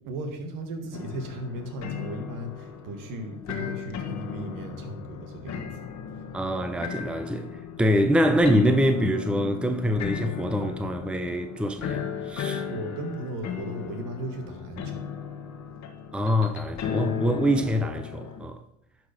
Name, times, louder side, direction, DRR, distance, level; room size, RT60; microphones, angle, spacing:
voice 1, 0.0-5.8 6.1-6.2 12.7-15.1, right 1 dB, 60° right, 1.9 m, -36 dB
sound 1, 0.9-18.4, left 8 dB, 45° left, 1.4 m, -36 dB
voice 2, 6.3-7.5 7.8-12.6 16.1-18.6, equal, 5° right, 0.8 m, -25 dB
11.0 x 4.7 x 5.1 m
hypercardioid pair, 75°, 37 cm